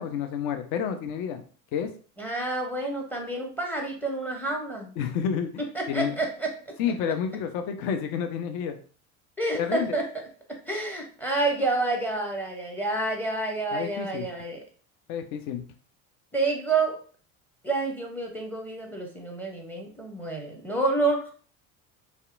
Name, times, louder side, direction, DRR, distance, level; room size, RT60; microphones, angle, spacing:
voice 1, 0.0-1.4 1.7-1.9 5.0-5.5 5.9-6.2 6.8-8.8 9.5-10.0 13.7-14.3 15.1-15.6, left 7 dB, 55° left, 7 dB, 0.5 m, -29 dB
voice 2, 2.2-4.9 5.7-6.5 9.4-10.0 10.7-14.6 16.3-16.9 17.6-21.2, right 3 dB, 5° left, 1 dB, 0.6 m, -28 dB
2.7 x 2.1 x 2.4 m, 0.42 s
hypercardioid pair, 75°, 42 cm